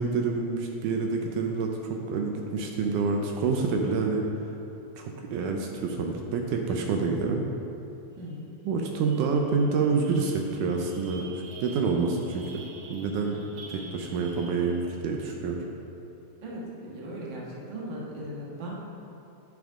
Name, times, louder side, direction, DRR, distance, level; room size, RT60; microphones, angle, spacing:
voice 1, 0.0-4.3 5.0-7.4 8.7-11.3 11.6-12.6 12.9-13.4 13.7-15.6, right 4 dB, 80° right, 2 dB, 2.2 m, -27 dB
voice 2, 8.2-8.5 16.4-18.8, right 1 dB, 45° right, -4 dB, 1.8 m, -38 dB
sound 1, 8.3-8.4 8.7-15.1, right 3 dB, 65° right, 1.8 m, -49 dB
10.5 x 9.7 x 3.7 m, 2.8 s
omnidirectional pair, 3.7 m